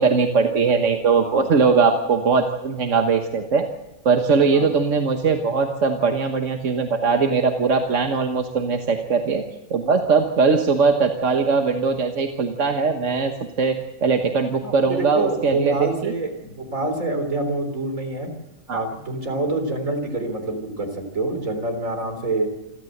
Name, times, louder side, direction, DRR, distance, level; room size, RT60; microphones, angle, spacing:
voice 1, 0.0-3.7 4.0-9.4 9.7-16.1 18.7-18.8, right 5 dB, 65° right, 4 dB, 1.6 m, -20 dB
voice 2, 14.6-18.3 18.7-22.5, right 2 dB, 85° right, 6 dB, 4.1 m, -26 dB
27.5 x 13.0 x 8.0 m, 0.97 s
omnidirectional pair, 1.4 m